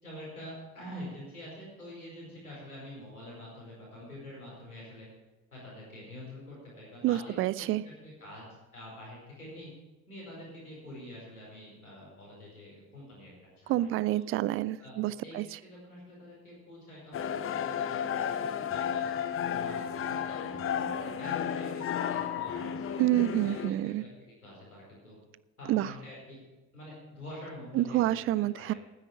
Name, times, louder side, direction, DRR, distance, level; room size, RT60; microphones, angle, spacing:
voice 1, 0.0-5.1 5.5-8.5 8.7-9.7 10.1-14.2 14.8-14.9 15.2-15.3 15.6-19.0 19.4-23.1 23.4-24.1 24.4-25.2 25.6-26.4 26.7-28.2 28.5-28.8, left 1 dB, 85° left, -5 dB, 4.9 m, -46 dB
voice 2, 7.0-7.8 13.7-15.4 23.0-24.0 25.7-25.9 27.7-28.7, right 14 dB, 30° right, 19 dB, 0.4 m, -28 dB
sound 1, 17.1-23.7, left 8 dB, 30° left, 0.8 m, -33 dB
13.0 x 9.7 x 5.1 m, 1.1 s
figure-of-eight pair, 55°, 43 cm